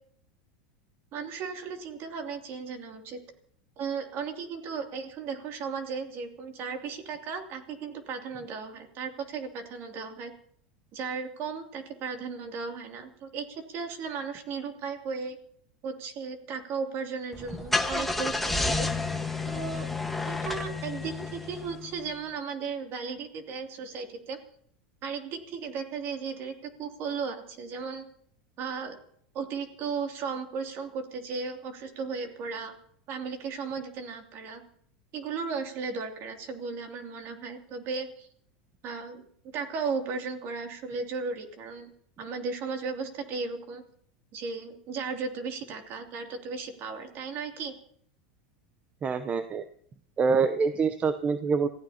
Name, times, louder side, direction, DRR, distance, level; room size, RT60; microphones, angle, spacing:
voice 1, 1.1-3.2 3.8-10.3 10.9-15.4 15.8-18.9 19.4-19.9 20.3-24.4 25.0-28.0 28.6-29.0 29.3-32.7 33.1-34.6 35.1-38.3 38.8-39.2 39.5-41.9 42.2-43.8 44.3-47.7, right 5 dB, 45° right, 4 dB, 2.7 m, -35 dB
Car / Engine starting, 17.3-22.0, left 3 dB, 5° left, 1.4 m, -30 dB
voice 2, 49.0-49.6 50.2-51.7, right 5 dB, 25° right, 10 dB, 0.7 m, -25 dB
27.5 x 15.5 x 2.9 m, 0.66 s
supercardioid pair, 120°, 5 cm